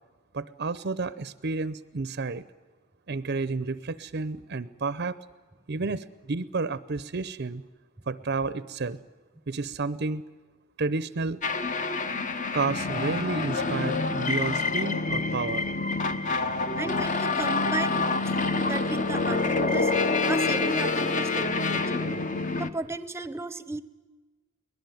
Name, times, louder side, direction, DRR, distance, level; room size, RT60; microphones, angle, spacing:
voice 1, 0.3-2.4 3.1-5.2 5.7-7.6 8.1-9.0 9.5-10.2 10.8-11.4 12.5-15.6, right 3 dB, 50° right, 15 dB, 0.6 m, -31 dB
sound 1, 11.4-22.7, left 3 dB, 35° left, 1.0 m, -27 dB
voice 2, 16.8-18.3 18.6-19.9 20.3-22.2 22.6-23.8, right 2 dB, 10° right, 13 dB, 0.8 m, -35 dB
22.5 x 19.0 x 9.3 m, 1.3 s
head